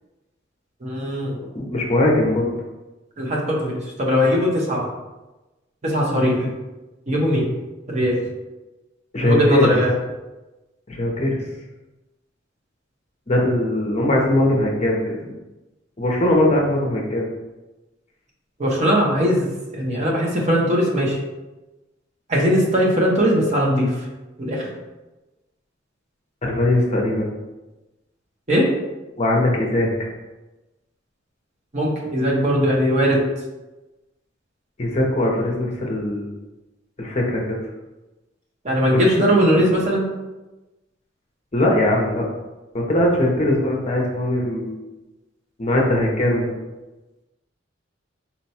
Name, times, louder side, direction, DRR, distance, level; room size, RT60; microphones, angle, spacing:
voice 1, 0.8-1.4 3.2-4.8 5.8-6.6 7.1-7.5 7.9-8.3 9.2-9.9 18.6-21.2 22.3-24.1 24.4-24.8 28.5-28.7 31.7-33.2 38.6-40.1, equal, 35° right, -3 dB, 0.8 m, -20 dB
voice 2, 1.5-2.5 9.1-9.7 10.9-11.4 13.3-15.1 16.0-17.3 26.4-27.3 29.2-30.1 34.8-36.4 37.0-37.6 38.9-39.0 39.5-39.6 41.5-42.3 42.7-44.8 45.6-46.5, left 1 dB, 35° left, -1 dB, 0.6 m, -20 dB
4.3 x 2.2 x 4.2 m, 1.1 s
head